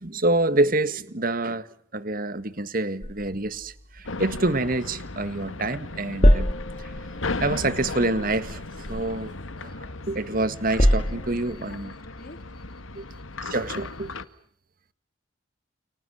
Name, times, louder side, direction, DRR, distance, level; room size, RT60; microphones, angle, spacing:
voice 1, 0.0-6.5 6.8-6.9 7.4-8.6 8.9-11.9 13.0-13.1 13.4-14.1, right 2 dB, 45° right, 14 dB, 1.9 m, -27 dB
sound 1, 3.0-5.6 5.8-10.1 10.5-11.7, equal, 30° left, 2.3 m, -26 dB
sound 2, 4.1-14.3, left 3 dB, 85° left, 1.8 m, -36 dB
voice 2, 9.7-10.0 10.8-12.4, left 2 dB, 50° left, 9 dB, 2.7 m, -47 dB
30.0 x 29.0 x 6.5 m, 0.62 s
head